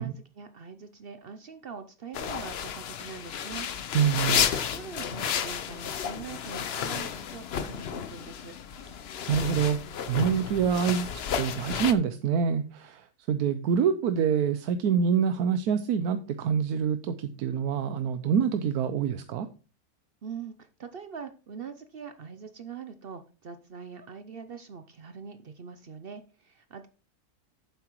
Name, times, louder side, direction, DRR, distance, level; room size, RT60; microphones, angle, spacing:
voice 1, 0.0-3.7 4.3-8.6 20.2-26.9, right 6 dB, 55° right, 9 dB, 0.6 m, -43 dB
sound 1, 2.1-11.9, left 8 dB, 55° left, 0.8 m, -32 dB
voice 2, 3.9-4.4 9.3-9.8 10.1-19.5, right 7 dB, 85° right, 10 dB, 1.2 m, -26 dB
8.9 x 7.5 x 3.0 m, 0.35 s
omnidirectional pair, 1.6 m